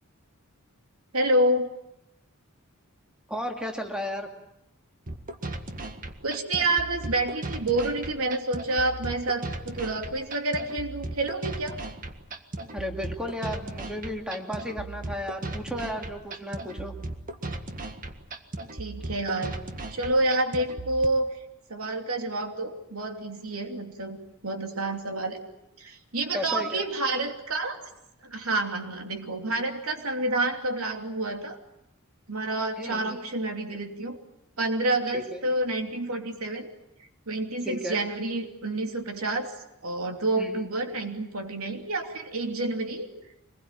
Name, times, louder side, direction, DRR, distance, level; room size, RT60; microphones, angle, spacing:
voice 1, 1.1-1.7 6.2-11.8 18.7-19.5 19.9-21.3 21.7-24.2 24.4-25.4 25.8-27.9 28.2-31.6 32.3-34.2 34.6-36.7 37.3-39.5 39.8-43.1, right 2 dB, 85° right, 4 dB, 3.0 m, -28 dB
voice 2, 3.3-4.3 12.7-16.9 26.3-26.8 32.8-33.2 35.1-35.4 37.7-38.0 40.4-40.5, equal, 5° right, 3 dB, 2.6 m, -34 dB
sound 1, 5.1-21.1, right 2 dB, 40° right, 1.8 m, -37 dB
25.5 x 21.0 x 9.0 m, 0.85 s
head